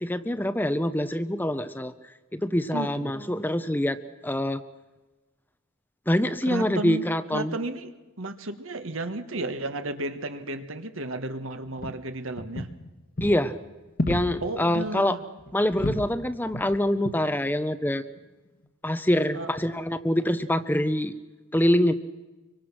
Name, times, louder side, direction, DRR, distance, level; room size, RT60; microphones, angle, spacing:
voice 1, 0.0-1.9 2.3-4.6 6.1-7.5 13.2-13.5 14.1-15.2 15.5-18.0 18.8-21.1 21.5-21.9, left 1 dB, 10° left, 11 dB, 0.7 m, -25 dB
voice 2, 2.7-3.1 6.5-7.0 7.3-7.9 8.2-12.7 14.4-15.2 19.3-19.5, right 2 dB, 65° right, 8 dB, 1.5 m, -33 dB
sound 1, 11.7-11.9 12.4-12.9 13.2-13.4 14.0-14.5 14.8-15.0 15.4-16.1 16.5-16.8 17.0-17.2 18.0-18.2, left 1 dB, 45° left, 1.4 m, -31 dB
25.0 x 24.0 x 6.1 m, 1.1 s
head